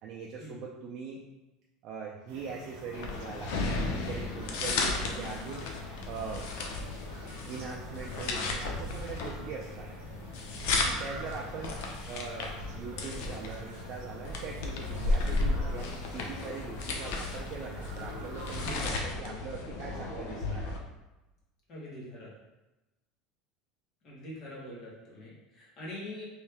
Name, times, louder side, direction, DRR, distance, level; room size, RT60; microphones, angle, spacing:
voice 1, 0.0-1.2 1.8-3.6 3.9-5.6 6.0-6.5 7.5-9.9 10.9-11.7 12.1-20.8, right 5 dB, 45° right, -2 dB, 0.4 m, -41 dB
sound 1, 2.3-18.9, right 2 dB, 60° right, 0.8 m, -49 dB
sound 2, 2.9-20.8, left 3 dB, 70° left, 0.6 m, -34 dB
voice 2, 10.9-11.3 18.6-18.8 21.7-22.3 24.0-26.2, left 1 dB, 35° left, -6 dB, 1.4 m, -44 dB
3.1 x 2.7 x 3.4 m, 1.0 s
supercardioid pair, 150°, 0 cm